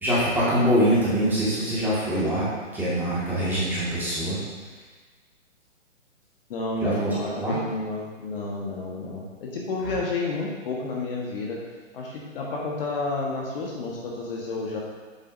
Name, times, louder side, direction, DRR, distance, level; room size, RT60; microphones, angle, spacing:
voice 1, 0.0-4.4 6.8-7.6 9.8-10.0, equal, 5° right, -10 dB, 1.9 m, -24 dB
voice 2, 3.3-3.6 6.5-11.6 11.9-14.8, left 3 dB, 45° left, -3 dB, 1.5 m, -31 dB
8.1 x 7.1 x 2.7 m, 1.4 s
figure-of-eight pair, 135°, 39 cm